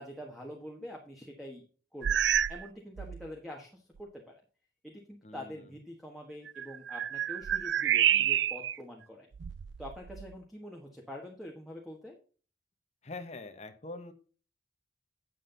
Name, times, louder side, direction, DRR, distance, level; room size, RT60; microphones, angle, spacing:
voice 1, 0.0-1.6 1.9-2.2 2.5-4.3 4.8-9.3 9.8-12.1, equal, ahead, 0 dB, 1.4 m, -45 dB
sound 1, 2.0-2.7 3.0-3.3 4.0-4.1 6.5-8.8 9.3-10.4, right 10 dB, 75° right, 0.4 m, -29 dB
voice 2, 5.2-5.7 13.0-14.1, left 2 dB, 35° left, 8 dB, 1.1 m, -44 dB
9.4 x 7.5 x 3.9 m, 0.38 s
head